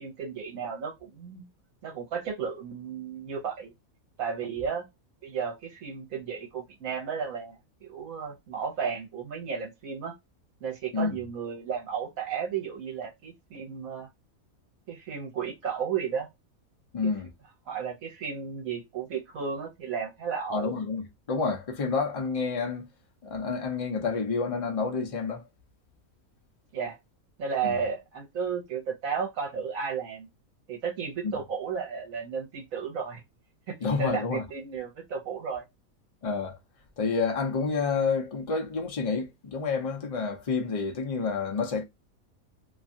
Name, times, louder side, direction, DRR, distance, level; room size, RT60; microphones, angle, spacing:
voice 1, 0.0-1.5 1.8-3.7 4.2-4.8 5.2-10.1 10.6-14.1 14.9-16.3 17.7-20.8 26.7-27.0 27.4-30.3 30.7-33.2 33.7-35.6, right 6 dB, 70° right, 1.3 m, -33 dB
voice 2, 16.9-17.3 20.5-22.9 23.2-25.4 27.6-27.8 31.2-31.4 33.8-34.4 36.2-36.6 37.0-41.8, left 4 dB, 55° left, 0.3 m, -29 dB
2.8 x 2.4 x 2.6 m
omnidirectional pair, 1.5 m